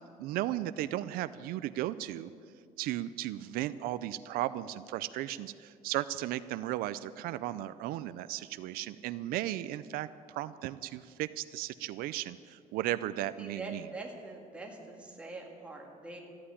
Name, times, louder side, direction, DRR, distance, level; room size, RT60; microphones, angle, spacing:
voice 1, 0.2-2.3 2.8-13.9, right 14 dB, 85° right, 14 dB, 0.5 m, -35 dB
voice 2, 13.4-16.2, right 2 dB, 10° right, 0 dB, 1.9 m, -44 dB
13.5 x 8.7 x 9.7 m, 2.3 s
cardioid pair, 165°, 15 cm